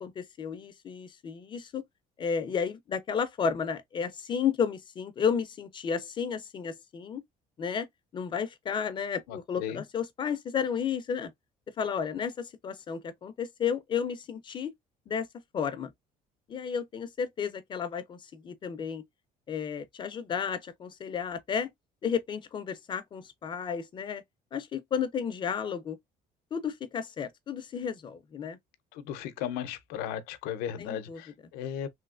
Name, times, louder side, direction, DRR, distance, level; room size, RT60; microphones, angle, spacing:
voice 1, 0.0-1.8 2.2-7.2 7.6-7.9 8.1-11.3 11.8-14.7 15.1-15.3 15.5-15.9 16.5-19.0 19.5-21.7 22.0-24.2 24.5-26.0 26.5-28.6 30.8-31.2, left 7 dB, 30° left, 0.4 m, -32 dB
voice 2, 9.3-9.8 28.9-31.9, left 9 dB, 85° left, 0.5 m, -36 dB
3.1 x 2.7 x 2.3 m
cardioid pair, 135°, 15 cm